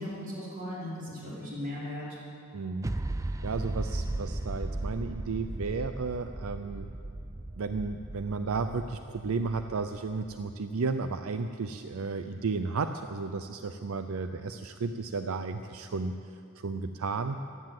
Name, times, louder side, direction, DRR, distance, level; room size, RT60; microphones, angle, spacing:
voice 1, 0.0-2.0, left 1 dB, 40° right, -7 dB, 4.9 m, -37 dB
voice 2, 2.5-2.9 3.4-6.9 7.6-17.4, right 4 dB, 80° right, 9 dB, 0.5 m, -33 dB
sound 1, 2.8-10.4, right 1 dB, 15° right, 0.4 m, -36 dB
15.0 x 11.0 x 7.7 m, 2.5 s
head